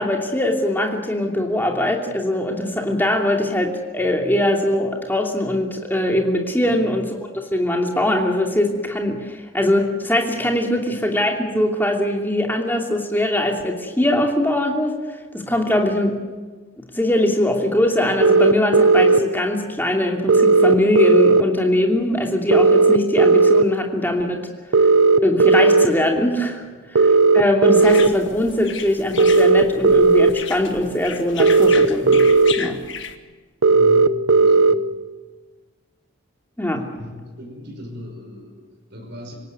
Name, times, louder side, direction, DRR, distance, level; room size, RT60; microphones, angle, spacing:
voice 1, 0.0-7.1 7.5-14.9 15.3-16.2 16.8-24.5 25.2-26.6 26.9-32.3 32.6-32.8 36.6-36.9, left 1 dB, 10° left, 2 dB, 2.8 m, -21 dB
sound 1, 18.2-19.2 20.3-21.4 22.5-23.6 24.7-25.9 27.0-28.1 29.2-30.3 31.4-32.5 33.6-34.7, right 4 dB, 80° right, 0.9 m, -14 dB
sound 2, 27.8-33.2, left 7 dB, 65° left, 1.7 m, -34 dB
voice 2, 33.7-34.9 37.0-39.4, left 1 dB, 55° right, 1 dB, 5.6 m, -39 dB
26.0 x 17.5 x 9.4 m, 1.4 s
head